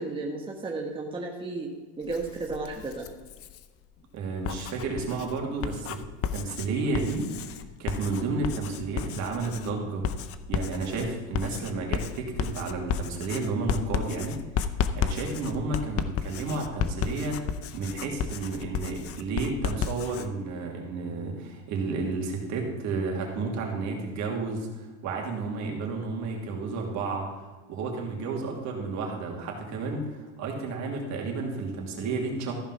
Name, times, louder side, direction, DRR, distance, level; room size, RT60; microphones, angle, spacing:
voice 1, 0.0-3.1, right 3 dB, 15° right, -1 dB, 1.4 m, -33 dB
Writing, 2.0-3.7 4.3-20.3, left 8 dB, 40° left, 0.7 m, -33 dB
voice 2, 4.1-6.0 6.3-7.3 7.8-10.1 10.5-14.4 14.9-17.4 17.7-27.3 27.7-32.5, right 3 dB, 50° right, 1 dB, 2.8 m, -31 dB
14.0 x 5.4 x 5.8 m, 1.3 s
supercardioid pair, 115°, 36 cm